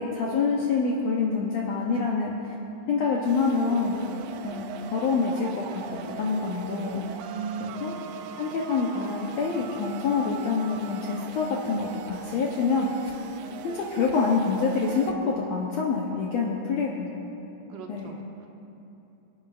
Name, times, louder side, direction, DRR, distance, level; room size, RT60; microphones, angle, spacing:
voice 1, 0.0-2.5 2.9-4.0 4.4-7.1 7.6-8.0 8.4-13.1 13.6-17.1 17.9-18.1, left 4 dB, 75° left, -3 dB, 1.6 m, -26 dB
sound 1, 3.2-15.1, right 8 dB, 90° right, 2.3 m, -41 dB
voice 2, 7.3-7.9 17.7-18.5, right 5 dB, 75° right, 2 dB, 2.1 m, -37 dB
26.0 x 8.8 x 2.5 m, 2.9 s
omnidirectional pair, 4.0 m